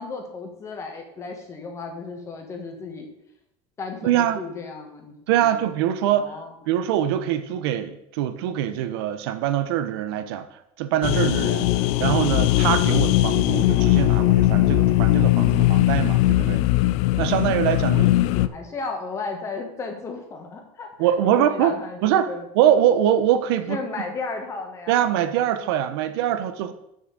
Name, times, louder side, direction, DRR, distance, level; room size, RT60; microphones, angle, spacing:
voice 1, 0.0-3.1 3.8-5.6 6.1-6.5 17.9-22.5 23.7-25.2, left 4 dB, 25° left, 4 dB, 1.5 m, -34 dB
voice 2, 4.0-4.4 5.3-6.3 6.7-10.5 10.8-16.6 17.2-18.0 21.0-21.7 22.0-22.3 22.5-23.8 24.9-26.7, right 11 dB, 85° right, 10 dB, 0.9 m, -23 dB
sound 1, 11.0-18.5, left 16 dB, 55° left, 0.4 m, -19 dB
6.7 x 6.2 x 6.7 m, 0.82 s
cardioid pair, 160°, 13 cm